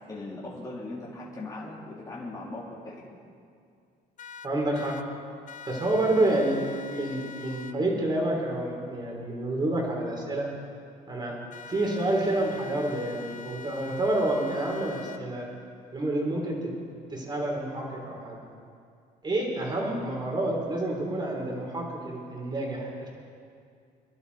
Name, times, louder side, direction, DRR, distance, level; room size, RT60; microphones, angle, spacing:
voice 1, 0.1-3.0, left 2 dB, 20° left, -6 dB, 3.2 m, -39 dB
sound 1, 4.2-5.0 5.5-7.7 11.5-15.2, left 5 dB, 50° left, 0.8 m, -44 dB
voice 2, 4.4-5.0 5.7-6.6 6.9-10.5 11.1-11.4 11.7-15.5 15.9-16.7 17.1-18.4 19.2-23.1, right 1 dB, 25° right, -1 dB, 4.0 m, -28 dB
25.5 x 11.5 x 4.3 m, 2.3 s
cardioid pair, 110°, 17 cm